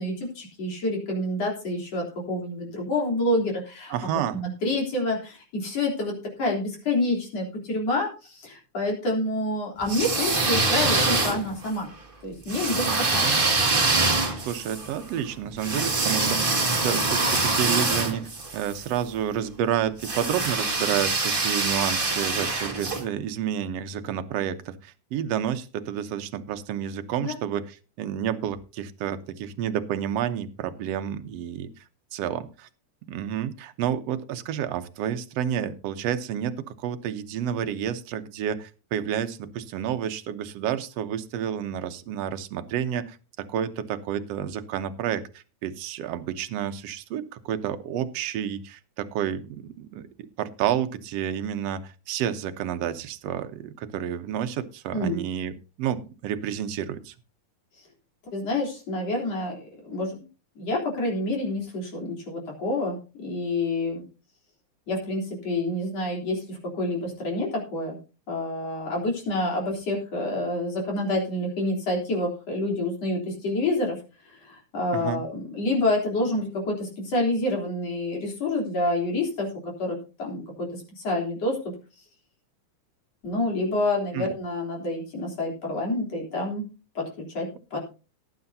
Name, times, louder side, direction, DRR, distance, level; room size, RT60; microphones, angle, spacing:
voice 1, 0.0-3.9 4.3-11.9 12.2-13.3 27.2-27.4 54.9-55.2 58.3-60.2 60.6-64.0 64.9-68.0 68.3-74.0 74.4-81.7 83.2-86.7 86.9-87.8, left 1 dB, 55° left, -1 dB, 4.7 m, -28 dB
voice 2, 3.9-4.4 12.8-13.5 14.3-31.7 32.1-32.7 33.1-50.1 50.4-55.5 55.8-57.1 74.9-75.2 84.1-84.3, right 9 dB, 65° right, 9 dB, 1.8 m, -30 dB
sound 1, 9.8-11.7 12.5-18.8 20.0-23.0, right 3 dB, 20° right, 1.6 m, -24 dB
18.0 x 9.7 x 2.7 m, 0.32 s
omnidirectional pair, 3.5 m